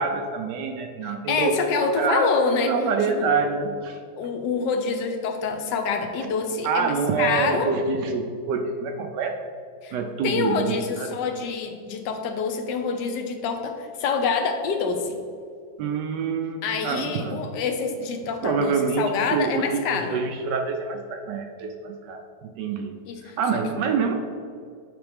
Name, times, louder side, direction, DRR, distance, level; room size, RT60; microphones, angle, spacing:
voice 1, 0.0-2.3 2.6-4.0 6.2-6.3 6.6-9.4 9.9-11.1 15.8-17.4 18.4-23.0 23.2-24.1, right 5 dB, 75° right, 5 dB, 1.1 m, -26 dB
voice 2, 1.0-2.7 3.2-3.3 4.2-7.7 9.8-10.0 10.2-15.2 16.6-20.2 23.1-23.4, left 5 dB, 70° left, 5 dB, 1.2 m, -26 dB
8.0 x 4.3 x 3.4 m, 2.3 s
omnidirectional pair, 2.2 m